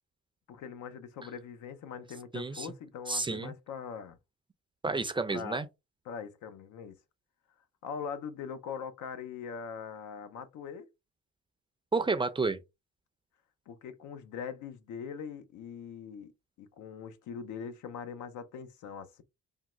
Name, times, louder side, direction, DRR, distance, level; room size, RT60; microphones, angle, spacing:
voice 1, 0.5-4.2 5.3-5.6 6.1-7.0 7.8-10.9 13.7-16.3 16.6-19.2, left 7 dB, 80° left, 0.7 m, -42 dB
voice 2, 2.3-2.7 3.1-3.5 4.8-5.7 11.9-12.6, right 3 dB, 15° right, 0.4 m, -30 dB
3.6 x 2.2 x 3.0 m
cardioid pair, 90°, 30 cm